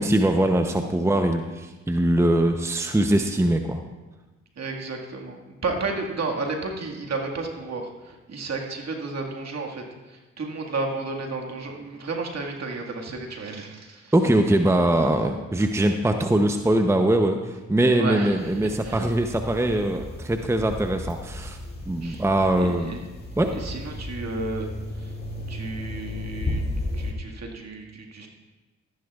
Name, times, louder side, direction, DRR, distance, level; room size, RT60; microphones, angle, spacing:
voice 1, 0.0-3.8 14.1-21.6 21.9-22.9 23.4-23.5, right 1 dB, 10° right, 6 dB, 0.8 m, -22 dB
voice 2, 4.6-5.4 5.6-14.1 17.9-19.1 22.0-22.2 22.6-23.0 23.5-24.7 24.9-25.2 25.5-26.6 26.9-28.3, right 3 dB, 55° right, 1 dB, 2.0 m, -32 dB
sound 1, 18.4-27.1, left 1 dB, 30° left, 2.3 m, -34 dB
14.0 x 11.0 x 2.4 m, 1.2 s
supercardioid pair, 55°, 31 cm